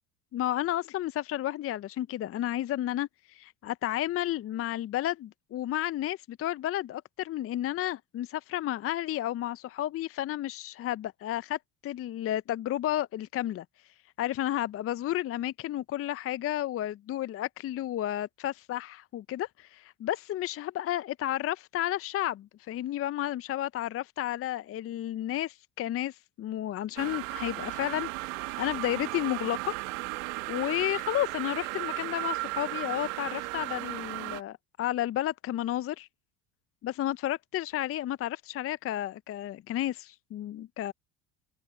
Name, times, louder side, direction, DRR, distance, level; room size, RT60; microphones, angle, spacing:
voice 1, 0.3-13.6 14.2-28.1 28.4-29.8 30.5-36.1 36.8-40.9, left 13 dB, 40° left, 0.6 m, -32 dB
sound 1, 27.0-34.4, right 24 dB, 75° right, 1.3 m, -35 dB
open air
hypercardioid pair, 75°, 37 cm